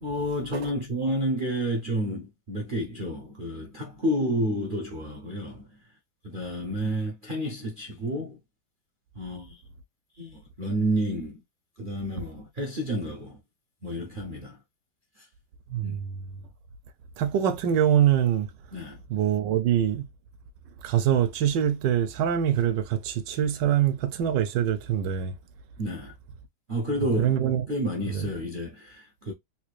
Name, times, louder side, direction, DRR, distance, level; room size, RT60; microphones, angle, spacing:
voice 1, 0.0-5.8 6.2-8.4 9.1-9.6 10.1-11.4 11.8-13.4 13.8-14.6 15.2-15.3 15.8-16.0 18.7-19.0 25.8-26.1 26.7-27.4 27.7-29.3, equal, 65° right, 0.5 m, -30 dB
voice 2, 15.7-16.1 17.2-18.5 19.1-20.0 20.8-25.4 27.2-27.6 28.1-28.2, right 10 dB, 80° right, 1.3 m, -24 dB
3.8 x 2.4 x 3.0 m
omnidirectional pair, 2.0 m